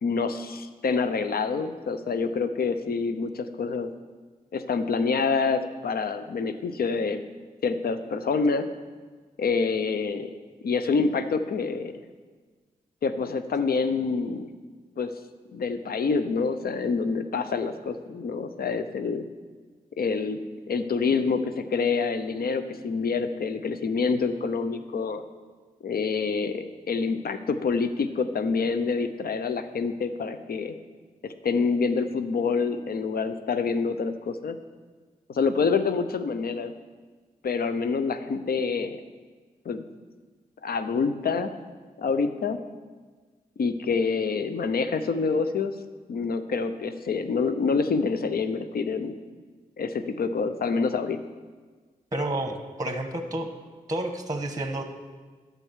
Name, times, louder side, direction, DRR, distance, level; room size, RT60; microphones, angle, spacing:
voice 1, 0.0-3.9 4.5-7.2 7.6-8.7 9.4-10.3 10.6-11.9 13.0-14.5 15.0-15.1 15.5-19.3 20.0-20.4 20.7-25.2 25.8-30.8 31.2-34.6 35.3-36.7 37.4-39.0 39.7-39.8 40.6-41.5 42.0-42.6 43.6-45.7 46.1-49.1 49.8-51.2, left 4 dB, 75° left, 10 dB, 0.7 m, -27 dB
voice 2, 52.1-53.5 53.9-54.8, right 1 dB, 20° right, 6 dB, 1.2 m, -30 dB
9.0 x 6.9 x 6.3 m, 1.4 s
cardioid pair, 45°, 16 cm